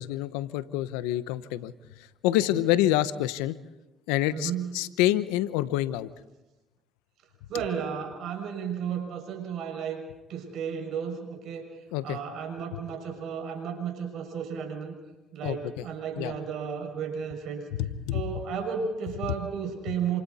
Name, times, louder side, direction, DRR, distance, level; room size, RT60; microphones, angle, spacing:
voice 1, 0.0-1.7 2.0-3.6 4.1-6.1 11.9-12.2 15.4-15.8 16.2-16.3 17.8-18.2, left 14 dB, 90° left, 14 dB, 0.9 m, -27 dB
voice 2, 4.3-4.7 7.5-14.9 15.3-17.7 18.1-20.2, right 7 dB, 70° right, 3 dB, 6.5 m, -33 dB
28.0 x 26.5 x 4.3 m, 1.0 s
supercardioid pair, 75°, 0 cm